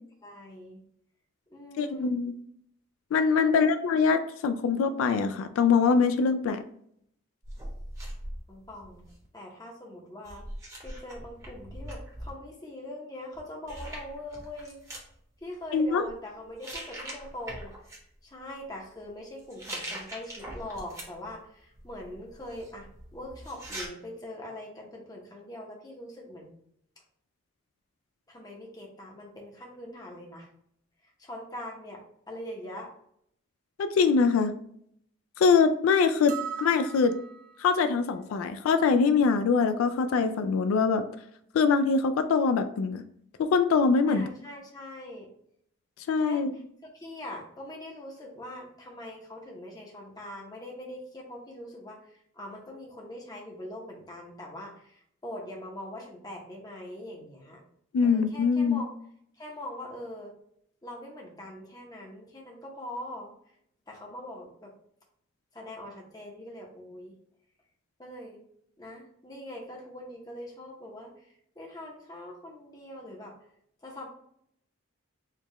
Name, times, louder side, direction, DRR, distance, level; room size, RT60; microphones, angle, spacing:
voice 1, 0.2-0.8 1.5-2.2 3.4-3.7 8.5-9.0 9.3-10.4 10.8-14.8 15.4-17.7 18.2-26.5 28.3-30.5 31.2-32.0 32.3-32.9 44.1-45.3 46.2-46.6 46.9-57.6 58.0-58.9 59.4-60.3 60.8-63.3 63.9-64.7 65.5-67.1 68.0-68.4 68.8-73.3 73.8-74.1, left 1 dB, 20° left, -1 dB, 0.7 m, -42 dB
voice 2, 1.8-2.3 3.1-6.6 15.7-16.0 33.8-34.5 35.4-37.2 37.6-41.0 41.5-43.0 43.4-44.3 46.1-46.5 57.9-58.8, left 5 dB, 85° left, 9 dB, 0.3 m, -23 dB
sound 1, 7.4-9.3 10.2-12.3 13.3-13.4 13.7-15.0 15.8-16.1 16.6-18.0 19.4-21.3 21.7-23.9, right 1 dB, 15° right, 0.9 m, -41 dB
sound 2, 36.3-37.6, right 8 dB, 40° right, 0.3 m, -38 dB
4.5 x 2.3 x 3.0 m, 0.69 s
head